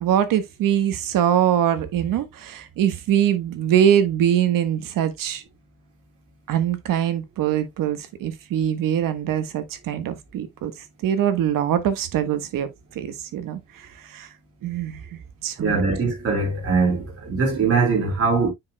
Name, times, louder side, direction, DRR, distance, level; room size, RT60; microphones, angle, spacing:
voice 1, 0.0-5.4 6.5-10.7 11.0-12.7 12.9-14.3 14.6-15.0 15.4-15.8, right 10 dB, 85° right, 1.4 m, -23 dB
voice 2, 15.6-18.5, right 4 dB, 45° right, 4.1 m, -21 dB
9.4 x 5.0 x 2.2 m
cardioid pair, 155°, 32 cm